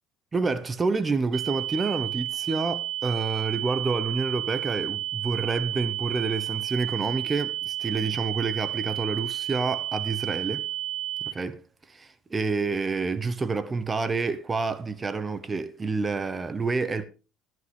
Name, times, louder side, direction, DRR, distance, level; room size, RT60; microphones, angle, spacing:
voice 1, 0.3-10.6 11.2-11.6 11.9-17.0, right 4 dB, 25° right, 0.9 m, -28 dB
sound 1, 1.3-11.3, right 13 dB, 75° right, 1.5 m, -32 dB
14.5 x 10.5 x 3.4 m
supercardioid pair, 100°, 0 cm